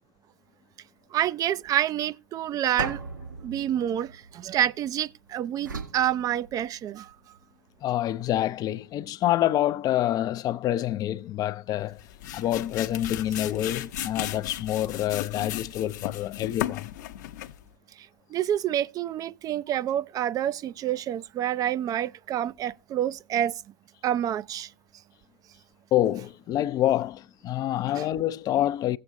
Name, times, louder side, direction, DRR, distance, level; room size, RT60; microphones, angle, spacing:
voice 1, 1.1-3.0 3.4-7.1 18.3-23.5 24.0-24.7 27.9-28.1, right 11 dB, 35° right, 0.4 m, -28 dB
sound 1, 2.8-5.0 5.6-7.0, right 4 dB, 85° right, 1.8 m, -38 dB
voice 2, 7.8-12.0 12.3-16.9 25.9-29.0, left 13 dB, 40° left, 0.4 m, -27 dB
sound 2, 11.8-17.7, left 12 dB, 65° left, 0.8 m, -36 dB
17.5 x 7.5 x 2.6 m
figure-of-eight pair, 75°, 10 cm